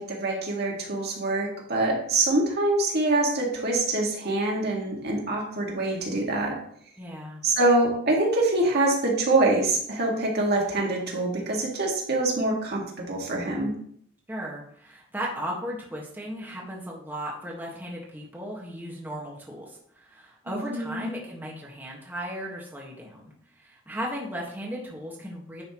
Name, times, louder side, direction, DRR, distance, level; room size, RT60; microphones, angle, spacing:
voice 1, 0.0-6.6 7.4-13.7 20.5-21.1, right 2 dB, 55° right, -1 dB, 1.9 m, -25 dB
voice 2, 7.0-7.4 14.3-23.3 23.6-25.6, equal, 10° right, -4 dB, 1.4 m, -36 dB
10.0 x 5.5 x 3.0 m, 0.65 s
head